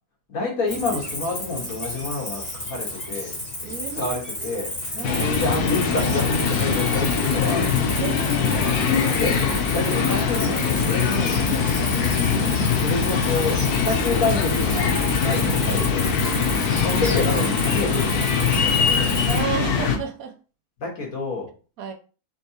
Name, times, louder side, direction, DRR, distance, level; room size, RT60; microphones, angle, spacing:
voice 1, 0.3-3.3 3.6-7.7 8.4-8.6 8.9-11.9 12.4-12.5 12.8-19.1 20.8-21.5, left 3 dB, 65° left, -1 dB, 1.8 m, -28 dB
Cricket, 0.7-19.4, left 1 dB, 25° left, 1.5 m, -32 dB
voice 2, 3.6-4.7 4.9-5.3 8.0-8.8 16.9-17.0 19.3-20.3 21.8-21.9, right 7 dB, 70° right, 6 dB, 1.1 m, -32 dB
sound 1, 5.0-20.0, left 6 dB, 80° left, 1.2 m, -22 dB
4.4 x 3.3 x 2.8 m, 0.36 s
omnidirectional pair, 1.6 m